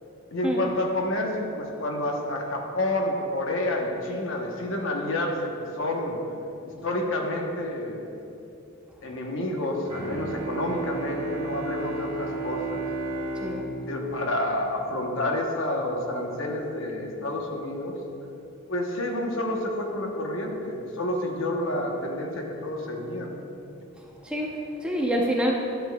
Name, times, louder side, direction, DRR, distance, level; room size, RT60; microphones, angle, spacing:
voice 1, 0.3-6.2 6.8-8.0 9.0-12.8 13.9-18.0 18.7-23.4, left 1 dB, 60° left, 1 dB, 1.0 m, -29 dB
Bowed string instrument, 9.8-15.5, right 3 dB, 30° right, 1.4 m, -34 dB
voice 2, 24.2-25.6, equal, 5° right, -2 dB, 0.6 m, -26 dB
11.5 x 8.0 x 2.3 m, 2.8 s
head